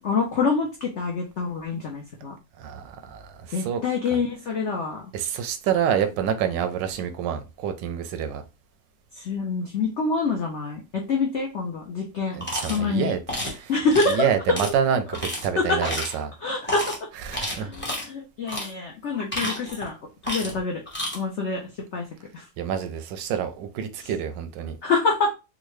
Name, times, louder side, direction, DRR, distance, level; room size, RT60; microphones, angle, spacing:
voice 1, 0.0-2.3 3.5-5.1 9.1-13.2 13.7-14.3 15.6-16.1 16.4-16.9 17.6-20.0 20.2-20.8 21.1-21.6 21.9-22.0 22.3-22.5 24.0-24.1 24.8-25.3, left 4 dB, 75° left, 1 dB, 0.6 m, -26 dB
voice 2, 2.6-3.8 5.1-8.4 12.4-13.2 13.5-13.7 14.1-16.3 17.3-17.7 22.6-24.8, right 8 dB, 80° right, 8 dB, 1.2 m, -27 dB
sound 1, 12.4-12.8 13.3-13.6 13.9-14.1 14.5-14.7 15.1-15.4 15.8-16.2 16.6-17.0 17.3-18.1 18.5-18.7 19.1-19.9 20.2-20.6 20.9-21.2, equal, 10° left, 0.7 m, -31 dB
3.7 x 2.2 x 3.1 m, 0.28 s
omnidirectional pair, 1.9 m